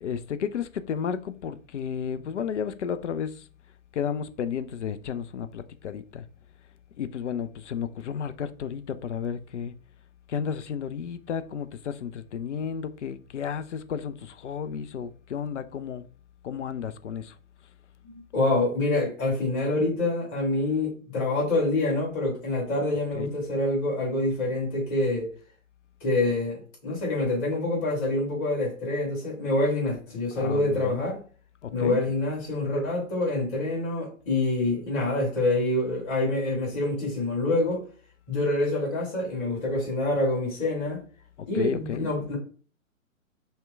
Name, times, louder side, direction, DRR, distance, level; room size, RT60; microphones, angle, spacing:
voice 1, 0.0-3.4 3.9-6.2 7.0-9.7 10.3-16.1 16.4-17.3 23.1-23.3 30.3-31.0 31.6-32.0 41.5-42.1, left 7 dB, 60° left, 0.5 m, -32 dB
voice 2, 18.0-25.3 26.0-31.2 31.7-37.9 38.3-41.0 41.5-42.4, left 2 dB, 25° left, 2.1 m, -26 dB
5.5 x 2.2 x 3.3 m
figure-of-eight pair, 120°, 41 cm